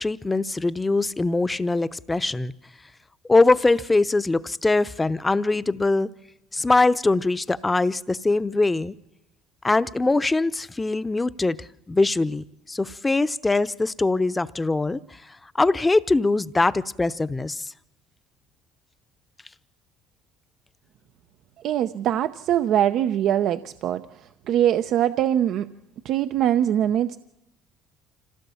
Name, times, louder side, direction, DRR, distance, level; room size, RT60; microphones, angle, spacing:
voice 1, 0.0-2.5 3.3-6.1 6.5-8.9 9.6-15.2 15.5-17.7, left 3 dB, 20° left, 16 dB, 0.8 m, -22 dB
voice 2, 21.6-24.0 24.5-25.7 26.0-27.2, right 11 dB, 65° right, 11 dB, 0.7 m, -22 dB
26.5 x 16.5 x 7.1 m, 0.94 s
hypercardioid pair, 70°, 0 cm